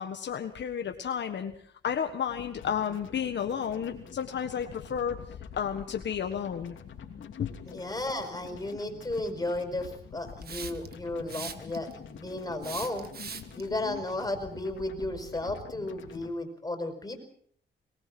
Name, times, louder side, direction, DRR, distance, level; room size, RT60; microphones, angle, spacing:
voice 1, 0.0-1.5 1.8-5.2 5.6-6.8 7.2-7.5 13.8-14.0, left 8 dB, 65° left, 6 dB, 1.5 m, -32 dB
sound 1, 2.6-16.3, left 7 dB, 85° left, 3.0 m, -46 dB
voice 2, 7.7-13.1 13.5-17.2, left 1 dB, 20° left, 5 dB, 5.0 m, -34 dB
Hiss, 10.4-10.9 11.3-11.9 12.6-13.6, right 6 dB, 55° right, 1.7 m, -40 dB
23.0 x 19.0 x 6.1 m, 0.62 s
cardioid pair, 95°, 19 cm